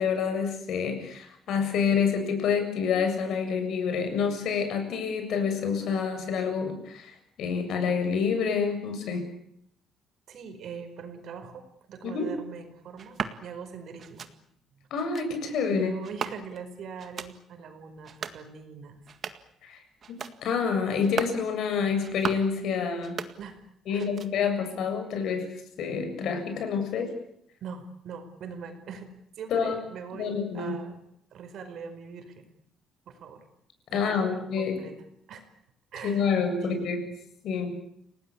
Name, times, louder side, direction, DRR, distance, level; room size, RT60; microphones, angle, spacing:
voice 1, 0.0-9.3 12.0-12.3 14.9-15.9 19.6-19.8 20.1-23.2 23.9-25.5 25.8-27.1 29.5-29.8 30.1-30.8 33.9-34.8 36.0-37.0 37.4-37.8, left 6 dB, 65° left, 6 dB, 7.3 m, -28 dB
voice 2, 10.3-14.3 15.7-19.0 23.4-23.6 23.9-24.1 27.6-29.1 29.4-31.0 31.3-32.6 33.1-33.4 33.9-34.9 35.3-35.4 35.9-37.2, right 6 dB, 55° right, 8 dB, 5.0 m, -42 dB
sound 1, 13.0-13.4 14.0-14.3 15.0-15.3 16.0-16.7 17.0-17.3 18.0-18.4 19.0-19.5 20.0-20.4 21.0-21.4 22.0-22.5 23.0-23.7 24.0-24.5, right 7 dB, 40° right, 1.9 m, -37 dB
29.5 x 19.0 x 8.8 m, 0.74 s
cardioid pair, 145°, 0 cm